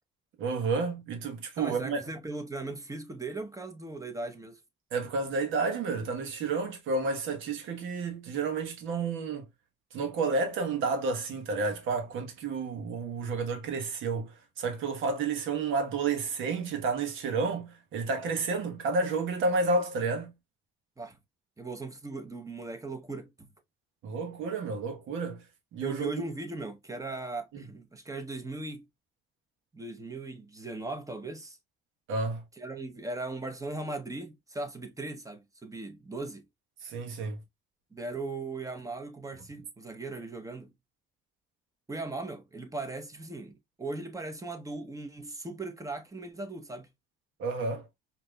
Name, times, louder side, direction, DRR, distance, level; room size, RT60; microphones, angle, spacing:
voice 1, 0.4-2.0 4.9-9.5 9.9-20.3 24.0-25.4 25.7-26.1 27.5-27.6 32.1-32.4 36.8-37.4 47.4-47.9, right 4 dB, 85° right, 1.1 m, -31 dB
voice 2, 1.6-4.6 21.0-21.2 21.6-23.5 25.8-28.8 29.7-31.6 32.6-36.4 37.9-40.7 41.9-46.9, right 2 dB, 15° right, 0.9 m, -38 dB
4.8 x 2.9 x 2.2 m
cardioid pair, 90°, 20 cm